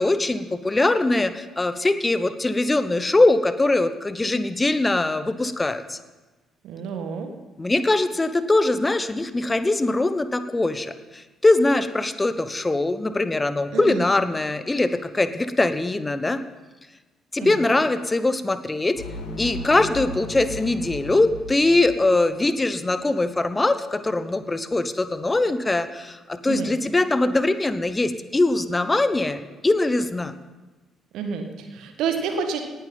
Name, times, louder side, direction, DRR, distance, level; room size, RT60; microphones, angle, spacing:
voice 1, 0.0-6.0 7.6-16.4 17.3-19.0 19.4-30.3, left 2 dB, 20° left, 11 dB, 1.1 m, -22 dB
voice 2, 6.6-7.3 13.7-14.1 17.4-17.6 26.5-26.7 31.1-32.6, right 5 dB, 65° right, 6 dB, 1.7 m, -29 dB
sound 1, 19.0-22.6, left 2 dB, 70° left, 1.9 m, -36 dB
18.5 x 10.5 x 5.6 m, 1.2 s
figure-of-eight pair, 45°, 0 cm